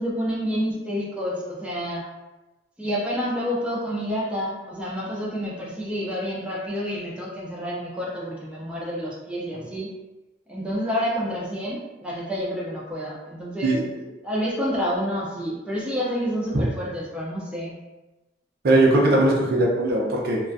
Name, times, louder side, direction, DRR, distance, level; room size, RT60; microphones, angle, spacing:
voice 1, 0.0-2.0 2.8-9.9 10.5-13.7 14.2-17.8, equal, 5° right, -5 dB, 0.4 m, -29 dB
voice 2, 18.6-20.4, right 2 dB, 55° right, -2 dB, 0.5 m, -19 dB
2.4 x 2.2 x 2.5 m, 1.1 s
head